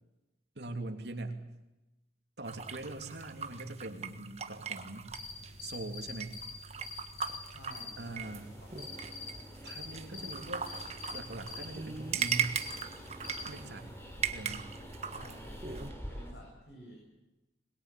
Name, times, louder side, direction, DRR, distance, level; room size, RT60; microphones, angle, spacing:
voice 1, 0.6-1.4 2.4-5.1 5.6-6.4 8.0-8.5 9.6-10.7 11.1-12.6 13.4-13.9 14.3-14.7, right 2 dB, 65° right, 5 dB, 3.0 m, -42 dB
sound 1, 2.4-15.9, right 7 dB, 35° right, 1.5 m, -40 dB
sound 2, 5.1-13.7, left 3 dB, 75° left, 5.7 m, -46 dB
voice 2, 7.4-9.3 15.1-17.1, equal, 60° left, -1 dB, 7.6 m, -53 dB
Train, 8.2-16.3, equal, 15° left, 4.0 m, -48 dB
22.0 x 21.5 x 8.5 m, 0.98 s
head